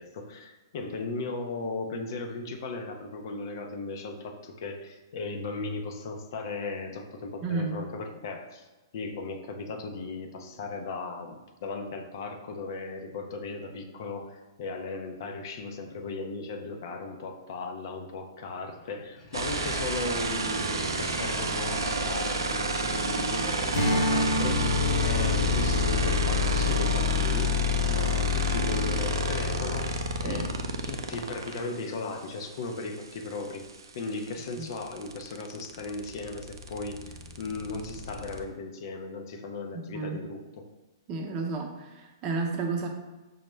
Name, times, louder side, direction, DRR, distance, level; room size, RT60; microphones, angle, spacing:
voice 1, 0.0-8.7 8.9-27.6 27.9-29.9 30.2-30.5 30.8-33.7 33.9-40.7, left 3 dB, 60° left, 4 dB, 0.5 m, -37 dB
voice 2, 7.4-7.9 30.3-30.4 34.6-34.7 39.9-40.2 41.1-42.9, right 4 dB, 35° right, 2 dB, 0.6 m, -31 dB
sound 1, 18.7-26.0, left 2 dB, 25° left, 0.7 m, -45 dB
sound 2, 19.3-31.6 33.7-33.8 34.0-38.4, left 2 dB, 85° right, 0.4 m, -28 dB
Strum, 23.7-28.5, left 1 dB, 75° left, 0.9 m, -32 dB
5.4 x 2.1 x 3.1 m, 1.1 s
hypercardioid pair, 125°, 2 cm